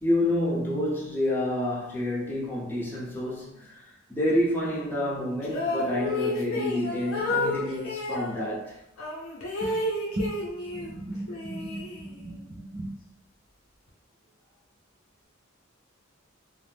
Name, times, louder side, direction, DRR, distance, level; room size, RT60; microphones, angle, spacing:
voice 1, 0.0-8.8, left 1 dB, 10° left, -7 dB, 0.6 m, -28 dB
sound 1, 5.4-8.3 9.0-10.9 11.3-12.4, left 2 dB, 80° left, 0.6 m, -31 dB
voice 2, 10.7-13.0, right 1 dB, 30° right, -3 dB, 0.4 m, -36 dB
2.5 x 2.0 x 3.3 m, 0.80 s
head